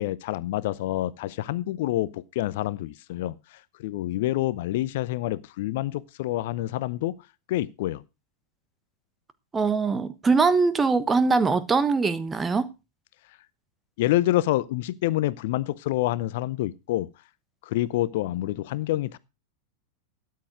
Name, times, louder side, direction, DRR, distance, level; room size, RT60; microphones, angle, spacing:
voice 1, 0.0-7.1 7.5-8.0 14.0-17.1 17.6-19.2, left 15 dB, 50° left, 0.6 m, -27 dB
voice 2, 9.5-12.7, right 4 dB, 15° right, 1.1 m, -22 dB
13.0 x 9.4 x 4.7 m
figure-of-eight pair, 90°, 0 cm